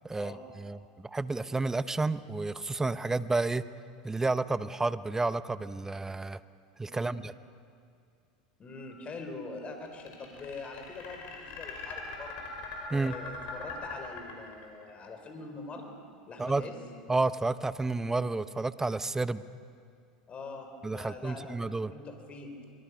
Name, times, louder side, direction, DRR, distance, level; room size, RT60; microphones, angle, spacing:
voice 1, 0.0-0.8 1.1-3.6 4.0-6.4 6.8-7.3 12.9-13.1 16.4-16.6 17.1-19.4 20.8-21.9, right 3 dB, 10° right, 15 dB, 0.8 m, -30 dB
voice 2, 6.8-7.2 8.6-12.5 12.9-15.9 16.3-16.8 20.3-22.6, left 3 dB, 30° left, 4 dB, 4.2 m, -43 dB
sound 1, 9.9-14.9, left 4 dB, 50° left, 5.7 m, -41 dB
23.5 x 22.0 x 6.3 m, 2.3 s
hypercardioid pair, 90°, 4 cm